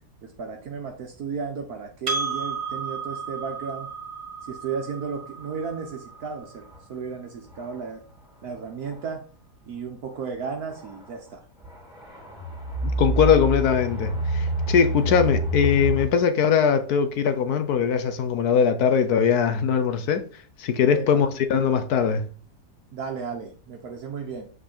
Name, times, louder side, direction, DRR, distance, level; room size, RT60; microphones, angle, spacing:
voice 1, 0.2-3.9 4.4-8.0 8.4-9.2 9.6-11.4 15.0-15.2 20.9-21.2 22.9-24.5, right 5 dB, 70° right, 1.5 m, -34 dB
Percussion, 2.1-6.9, right 4 dB, 40° right, 2.1 m, -34 dB
sound 1, 6.7-6.8 7.5-7.8 8.9-9.0 10.8-11.1 11.6-16.1, right 1 dB, ahead, 2.3 m, -27 dB
voice 2, 12.8-20.2 20.6-22.2, left 7 dB, 70° left, 1.4 m, -21 dB
7.7 x 4.8 x 4.4 m
omnidirectional pair, 1.7 m